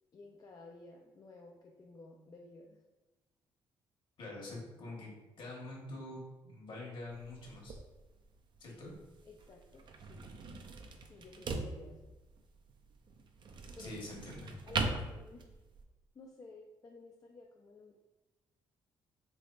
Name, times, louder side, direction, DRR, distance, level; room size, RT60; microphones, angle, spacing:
voice 1, 0.1-2.8 9.3-10.3 11.0-12.0 13.7-14.1 14.7-15.6 16.1-18.0, left 2 dB, 35° left, 0 dB, 0.4 m, -54 dB
voice 2, 4.2-7.7 8.6-8.9 13.8-14.6, left 2 dB, 55° left, -3 dB, 1.3 m, -46 dB
sound 1, 7.1-15.8, right 3 dB, 50° right, 0.5 m, -42 dB
3.4 x 3.1 x 2.5 m, 1.1 s
supercardioid pair, 60°, 10 cm